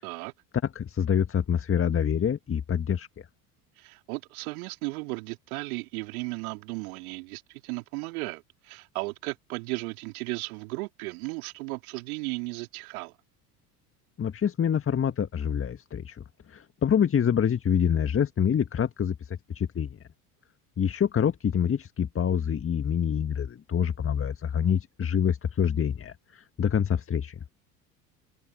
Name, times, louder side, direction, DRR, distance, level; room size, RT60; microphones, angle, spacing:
voice 1, 0.0-0.3 3.8-13.2, right 25 dB, 65° right, 2.9 m, -35 dB
voice 2, 0.8-3.1 14.2-20.0 20.8-27.4, left 8 dB, 25° left, 1.9 m, -26 dB
open air
figure-of-eight pair, 70°, 47 cm